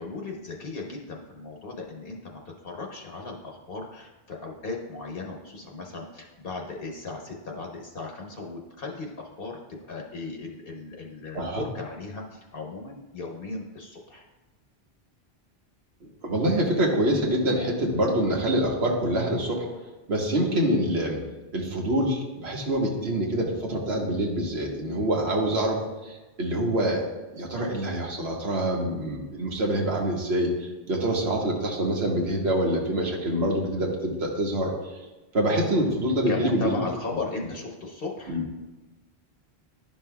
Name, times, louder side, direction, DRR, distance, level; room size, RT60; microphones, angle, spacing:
voice 1, 0.0-14.2 36.3-38.4, left 3 dB, 65° left, 1 dB, 1.0 m, -36 dB
voice 2, 16.0-19.7 20.1-21.2 21.5-27.1 27.3-34.9 35.3-36.8 38.3-38.4, right 1 dB, 90° right, -1 dB, 1.4 m, -26 dB
11.0 x 5.5 x 2.2 m, 1.1 s
omnidirectional pair, 1.1 m